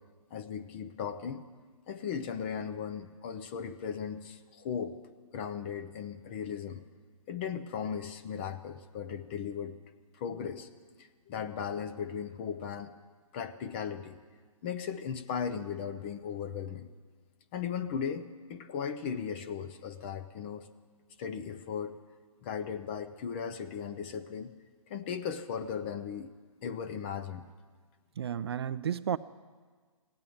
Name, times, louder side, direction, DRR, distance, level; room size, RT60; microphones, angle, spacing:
voice 1, 0.3-1.4 1.9-5.0 5.3-6.8 7.3-9.8 10.1-10.7 11.0-13.0 13.3-14.2 14.6-16.9 17.5-20.7 21.2-22.0 22.4-24.5 24.9-26.3 26.6-27.5, left 7 dB, 20° left, 9 dB, 0.5 m, -37 dB
voice 2, 28.2-29.2, right 9 dB, 45° right, 14 dB, 0.4 m, -32 dB
16.5 x 8.6 x 9.2 m, 1.5 s
hypercardioid pair, 155°, 18 cm